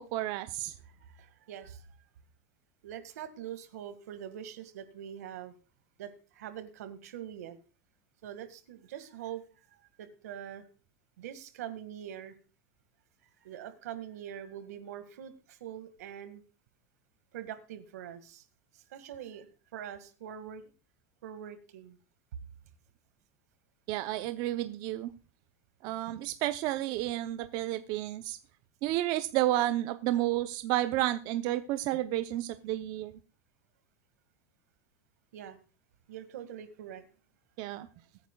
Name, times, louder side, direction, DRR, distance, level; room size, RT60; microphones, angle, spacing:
voice 1, 0.0-0.7 23.9-25.1 25.8-28.4 28.8-33.2 37.6-37.9, right 14 dB, 50° right, 10 dB, 0.7 m, -31 dB
voice 2, 0.8-1.9 2.8-5.5 6.0-7.6 8.2-9.4 9.7-10.6 11.2-12.3 13.4-16.4 17.3-18.4 18.7-19.5 19.7-20.6 21.2-22.0 35.3-35.6 36.1-37.1, right 10 dB, 90° right, 10 dB, 1.9 m, -44 dB
22.0 x 9.1 x 2.3 m, 0.35 s
supercardioid pair, 140°, 8 cm